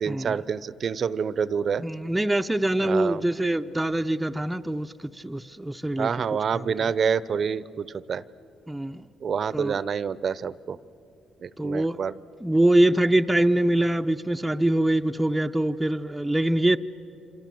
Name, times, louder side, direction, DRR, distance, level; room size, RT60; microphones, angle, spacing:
voice 1, 0.0-1.8 2.8-3.2 6.0-8.2 9.2-10.8 11.4-12.1, right 6 dB, 50° right, 0.7 m, -27 dB
voice 2, 1.8-6.2 6.5-6.7 8.7-9.0 9.5-9.8 11.6-12.0 12.4-16.8, right 1 dB, 10° right, 0.6 m, -24 dB
27.5 x 26.5 x 7.7 m
cardioid pair, 90°, 0 cm